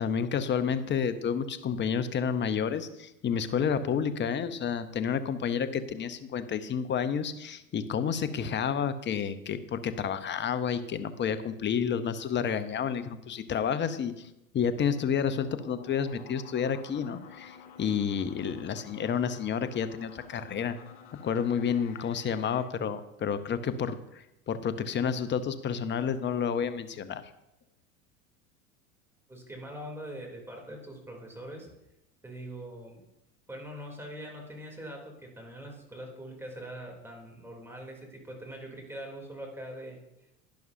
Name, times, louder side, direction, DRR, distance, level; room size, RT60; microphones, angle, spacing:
voice 1, 0.0-14.3 14.5-20.8 21.2-27.2, left 7 dB, 25° left, 12 dB, 0.8 m, -30 dB
sound 1, 15.4-22.6, left 7 dB, 60° left, 1.7 m, -51 dB
voice 2, 29.3-31.7 32.2-33.0 33.5-40.0, right 1 dB, 5° right, 0 dB, 3.1 m, -43 dB
11.5 x 11.0 x 2.7 m, 0.88 s
hypercardioid pair, 85°, 42 cm